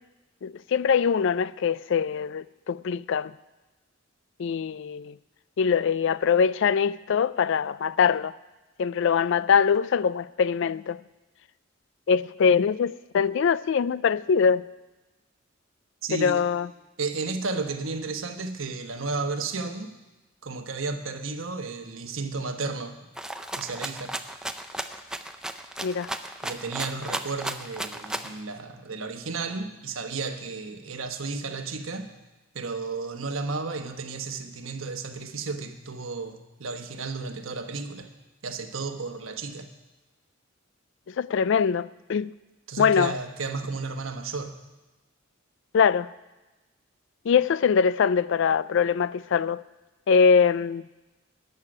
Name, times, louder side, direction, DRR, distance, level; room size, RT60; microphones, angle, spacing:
voice 1, 0.4-3.3 4.4-5.2 5.6-8.3 8.8-11.0 12.1-14.7 16.1-16.7 25.8-26.1 41.2-42.3 42.8-43.1 45.7-46.1 47.3-49.6 50.1-50.8, left 6 dB, 65° left, 0.4 m, -23 dB
voice 2, 16.0-16.4 17.0-19.9 20.4-23.0 23.6-24.2 26.4-32.2 32.5-38.1 38.4-39.7 42.7-44.5, right 4 dB, 80° right, 1.2 m, -33 dB
Rattle (instrument), 23.2-28.4, right 1 dB, 5° right, 0.5 m, -34 dB
14.0 x 6.6 x 9.8 m
head